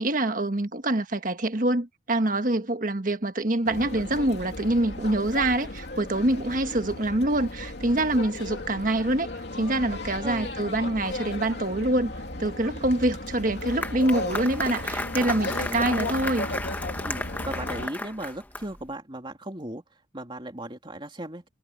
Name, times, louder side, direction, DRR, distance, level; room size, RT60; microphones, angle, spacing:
voice 1, 0.0-9.3 9.6-12.1 12.4-16.5, right 1 dB, 45° right, 1.5 m, -25 dB
sound 1, 3.7-17.9, left 2 dB, 60° left, 3.1 m, -35 dB
Applause, 13.4-18.9, left 2 dB, 10° left, 1.1 m, -34 dB
voice 2, 15.2-15.9 17.0-19.8 20.1-21.5, right 1 dB, 25° right, 3.2 m, -37 dB
head